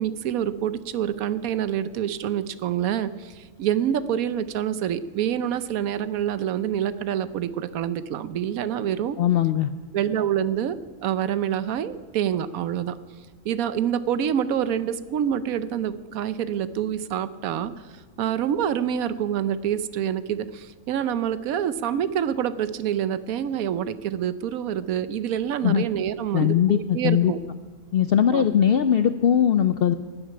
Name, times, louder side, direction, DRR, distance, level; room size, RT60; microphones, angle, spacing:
voice 1, 0.0-9.2 9.9-13.0 13.4-27.4 28.3-28.5, right 9 dB, 75° right, 14 dB, 1.1 m, -27 dB
voice 2, 9.2-9.7 25.6-25.8 26.3-27.3 27.9-29.9, left 9 dB, 80° left, 11 dB, 0.5 m, -20 dB
11.5 x 8.0 x 9.9 m, 1.5 s
omnidirectional pair, 1.5 m